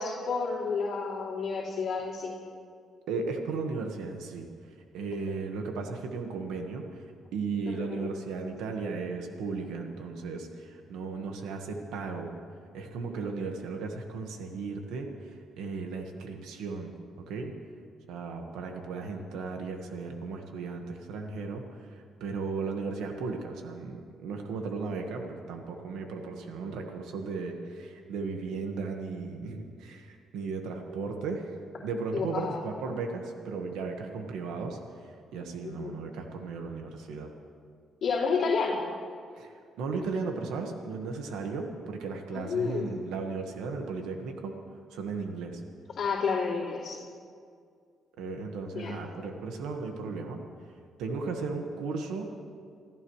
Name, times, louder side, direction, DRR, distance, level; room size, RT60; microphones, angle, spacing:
voice 1, 0.0-2.3 7.7-8.2 32.1-32.6 35.6-36.0 38.0-38.8 42.3-42.9 46.0-47.0 48.7-49.0, left 5 dB, 60° left, -7 dB, 3.0 m, -30 dB
voice 2, 3.1-4.5 4.9-7.1 7.3-12.3 12.7-16.9 17.3-17.5 18.1-31.5 31.8-37.3 39.4-39.5 39.8-44.5 44.9-45.6 48.2-50.4 51.0-52.3, right 4 dB, 90° right, 3 dB, 1.5 m, -36 dB
28.5 x 14.5 x 3.2 m, 2.2 s
cardioid pair, 90°, 0 cm